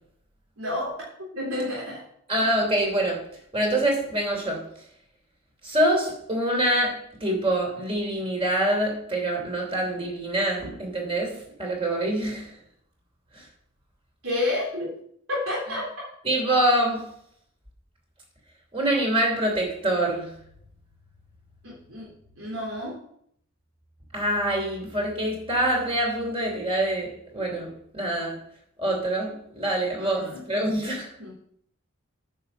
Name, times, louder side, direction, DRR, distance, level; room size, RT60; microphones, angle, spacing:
voice 1, 0.6-1.0 1.3-2.0 14.2-14.9 15.3-15.9 21.6-23.0 30.0-30.4 31.2-31.3, left 2 dB, 80° right, 3.6 m, -30 dB
voice 2, 2.3-3.3 3.5-4.7 5.6-12.5 13.3-13.4 16.2-17.1 18.7-20.3 24.1-28.4 28.8-31.3, right 1 dB, 25° right, 3.0 m, -25 dB
9.8 x 5.8 x 6.7 m
head